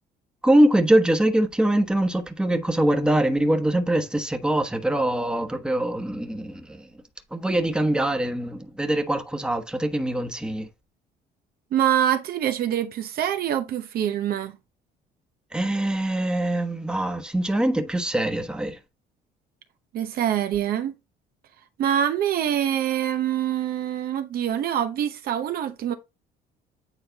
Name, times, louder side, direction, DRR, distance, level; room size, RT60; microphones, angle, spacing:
voice 1, 0.4-6.9 7.3-10.7 15.5-18.8, right 1 dB, 5° right, 1.1 m, -23 dB
voice 2, 11.7-14.5 19.9-20.9 21.8-25.9, right 10 dB, 65° right, 0.9 m, -25 dB
9.2 x 3.8 x 2.9 m
cardioid pair, 110°, 17 cm